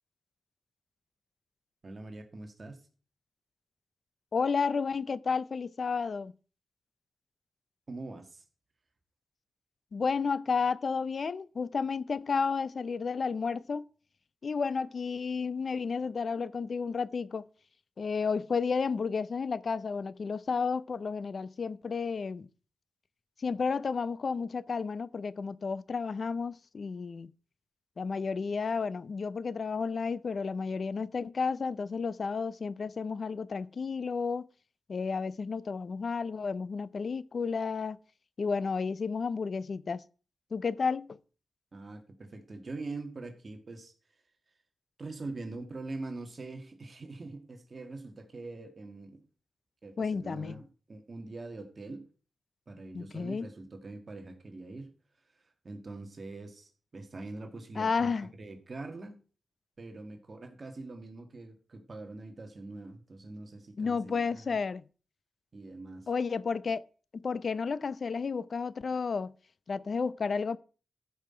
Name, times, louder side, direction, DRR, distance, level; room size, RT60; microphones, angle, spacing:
voice 1, 1.8-2.8 7.9-8.4 41.7-43.9 45.0-49.2 49.8-52.1 52.7-54.9 55.6-58.1 58.4-59.2 59.8-64.6 65.5-66.1, right 3 dB, 40° right, 1.9 m, -43 dB
voice 2, 4.3-6.3 9.9-13.9 14.4-17.4 18.0-22.5 23.4-27.3 28.0-34.5 34.9-38.0 38.4-40.0 40.5-41.2 50.0-50.6 52.9-53.5 57.8-58.3 63.8-64.8 66.1-66.8 67.1-69.3 69.7-70.6, left 5 dB, 55° left, 0.5 m, -32 dB
13.5 x 5.7 x 4.4 m
wide cardioid pair, 95°, 0 cm